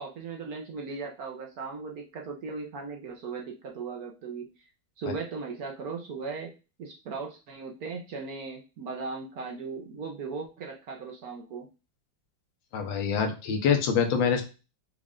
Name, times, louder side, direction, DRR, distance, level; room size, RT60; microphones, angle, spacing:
voice 1, 0.0-4.5 5.0-6.5 6.8-11.7, right 4 dB, 60° right, 1 dB, 1.1 m, -37 dB
voice 2, 12.7-14.4, left 6 dB, 80° left, 4 dB, 1.6 m, -25 dB
5.3 x 2.4 x 3.6 m, 0.31 s
omnidirectional pair, 2.1 m